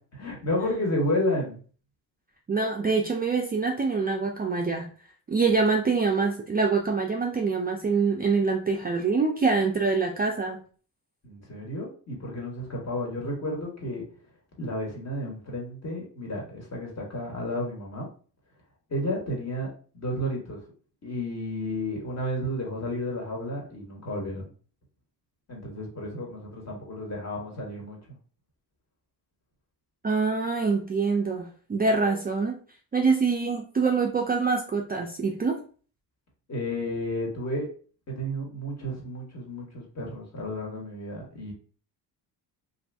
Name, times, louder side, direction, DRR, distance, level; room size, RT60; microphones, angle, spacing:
voice 1, 0.1-1.6 11.2-14.0 14.6-18.1 18.9-20.6 21.0-24.5 25.5-28.0 36.5-37.7 38.1-41.5, left 1 dB, 35° left, -1 dB, 1.4 m, -32 dB
voice 2, 2.5-4.9 5.3-10.6 30.0-32.6 32.9-35.6, right 4 dB, 25° right, 1 dB, 0.4 m, -25 dB
2.6 x 2.5 x 3.4 m, 0.41 s
cardioid pair, 90°, 42 cm